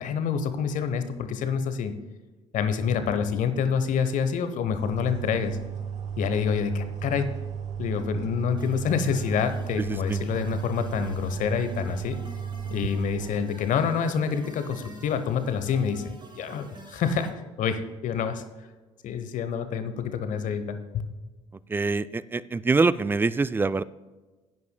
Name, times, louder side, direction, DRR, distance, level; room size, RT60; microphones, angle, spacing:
voice 1, 0.0-1.9 2.5-5.6 6.2-7.3 7.8-12.2 12.7-17.3 17.6-18.4 19.0-21.0, left 7 dB, 50° left, 10 dB, 1.0 m, -27 dB
sound 1, 4.7-13.5, right 7 dB, 45° right, 0.8 m, -34 dB
sound 2, 8.6-17.3, right 2 dB, 30° right, 2.3 m, -47 dB
voice 2, 9.9-10.2 21.7-23.8, right 3 dB, 15° right, 17 dB, 0.3 m, -24 dB
16.0 x 9.4 x 2.3 m, 1.3 s
figure-of-eight pair, 50°, 16 cm